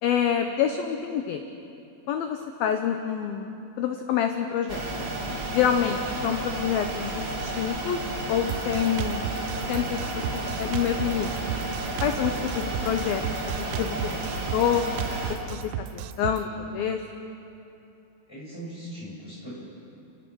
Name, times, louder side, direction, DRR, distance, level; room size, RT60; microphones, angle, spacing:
voice 1, 0.0-1.4 2.1-4.8 5.5-8.0 8.3-9.3 9.7-10.2 10.6-11.4 12.0-13.2 13.5-14.8 15.4-15.6 15.9-17.0, left 8 dB, 90° left, 6 dB, 2.1 m, -27 dB
sound 1, 4.7-15.4, right 1 dB, 45° right, 1.5 m, -32 dB
Drum kit, 8.5-16.4, right 12 dB, 85° right, 3.0 m, -34 dB
voice 2, 16.4-16.7 18.3-19.5, right 1 dB, 5° left, -6 dB, 7.2 m, -40 dB
29.5 x 17.5 x 6.3 m, 2.7 s
omnidirectional pair, 5.5 m